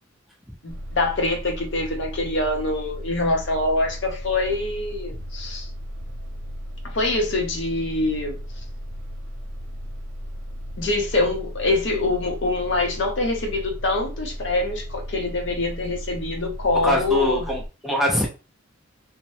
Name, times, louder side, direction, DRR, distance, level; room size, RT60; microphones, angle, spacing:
voice 1, 0.6-5.7 6.9-8.4 10.8-17.5, left 2 dB, 60° left, 0.7 m, -25 dB
sound 1, 0.7-17.7, equal, 75° right, 0.7 m, -35 dB
voice 2, 16.7-18.3, left 1 dB, ahead, 0.5 m, -23 dB
3.1 x 2.1 x 2.6 m
head